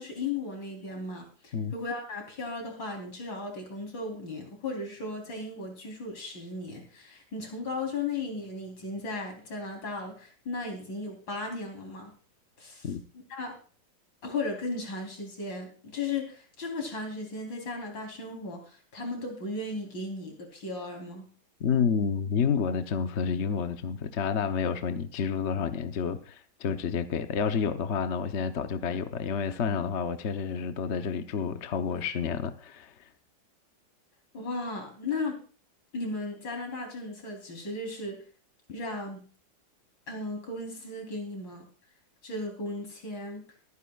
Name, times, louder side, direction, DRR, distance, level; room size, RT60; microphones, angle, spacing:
voice 1, 0.0-12.1 12.6-12.9 13.3-13.6 14.2-21.3 34.3-35.4 35.9-38.2 38.7-39.2 40.1-41.7 42.2-43.4, left 3 dB, 80° left, 4.4 m, -36 dB
voice 2, 21.6-32.9, left 6 dB, 50° left, 1.0 m, -29 dB
23.0 x 9.8 x 2.4 m
omnidirectional pair, 2.1 m